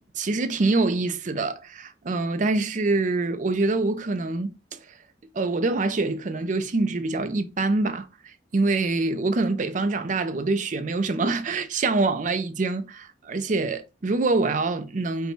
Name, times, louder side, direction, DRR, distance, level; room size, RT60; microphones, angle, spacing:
voice 1, 0.0-5.0 5.3-15.3, right 3 dB, 45° right, 0.5 m, -25 dB
5.2 x 2.2 x 4.5 m
head